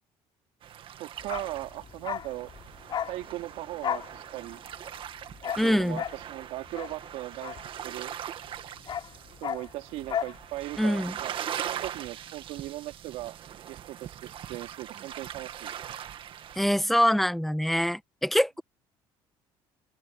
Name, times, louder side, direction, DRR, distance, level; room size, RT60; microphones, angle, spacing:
sound 1, 0.6-16.6, right 10 dB, 55° right, 1.9 m, -41 dB
voice 1, 1.0-2.5 3.1-4.6 5.4-8.1 9.4-11.3 11.7-13.3 13.7-15.8, right 17 dB, 80° right, 2.9 m, -38 dB
Bark, 1.2-8.2 8.5-10.4 10.7-10.8, left 9 dB, 45° left, 4.9 m, -35 dB
voice 2, 5.6-6.0 10.8-11.1 16.6-18.6, equal, ahead, 1.3 m, -24 dB
open air
cardioid pair, 110°, 11 cm